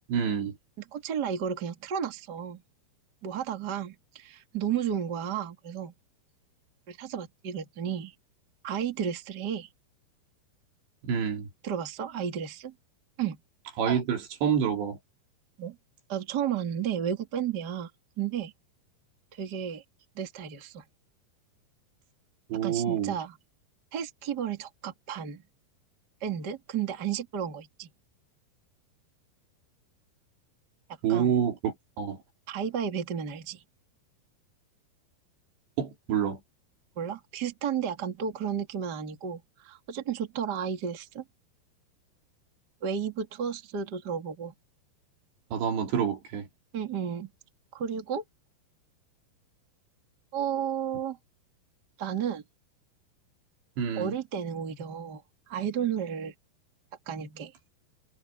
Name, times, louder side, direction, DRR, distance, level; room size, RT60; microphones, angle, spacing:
voice 1, 0.1-0.5 11.0-11.5 13.8-15.0 22.5-23.2 31.0-32.2 35.8-36.4 45.5-46.5 53.8-54.1, right 8 dB, 85° right, 5.4 m, -27 dB
voice 2, 0.9-2.6 3.2-5.9 6.9-8.1 8.6-9.7 11.6-12.7 13.2-13.4 15.6-15.8 16.1-17.9 18.2-18.5 19.3-19.8 20.2-20.8 22.6-23.4 23.9-25.4 26.2-27.9 31.1-31.3 32.5-33.6 37.0-41.2 42.8-44.5 46.7-47.3 47.7-48.2 50.3-51.2 52.0-52.4 53.9-55.2 55.5-56.3 57.1-57.5, right 8 dB, 30° right, 2.1 m, -32 dB
omnidirectional pair, 4.9 m